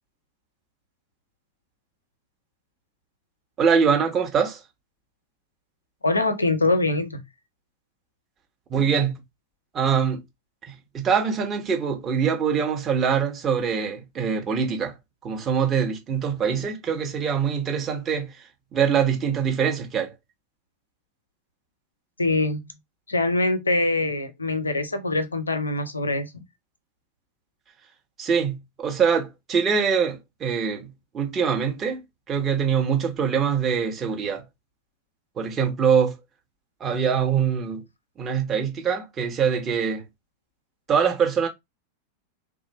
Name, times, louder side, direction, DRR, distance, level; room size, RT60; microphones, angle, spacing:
voice 1, 3.6-4.6 8.7-9.2 9.7-10.2 10.7-14.9 15.2-18.3 18.7-20.1 28.2-32.0 32.3-34.4 35.4-36.2 36.8-37.8 38.2-40.0 40.9-41.5, right 7 dB, 25° right, 1.1 m, -23 dB
voice 2, 6.0-7.2 22.2-22.6 23.1-26.4, left 2 dB, 80° left, 0.6 m, -24 dB
3.2 x 2.4 x 3.0 m
figure-of-eight pair, 90°, 0 cm